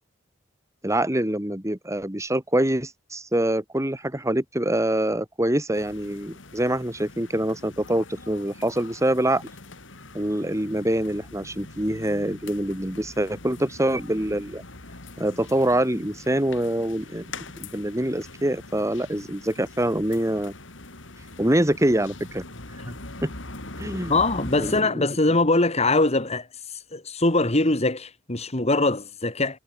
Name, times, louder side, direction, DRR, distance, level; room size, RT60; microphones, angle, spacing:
voice 1, 0.8-9.4 10.1-14.6 15.2-20.5 21.4-22.4 23.2-23.3 23.8-24.1 24.6-25.0, right 1 dB, 15° right, 2.6 m, -25 dB
sound 1, 5.7-24.8, left 2 dB, 75° left, 3.9 m, -42 dB
voice 2, 24.1-26.5 26.9-29.6, left 2 dB, 35° left, 2.7 m, -22 dB
head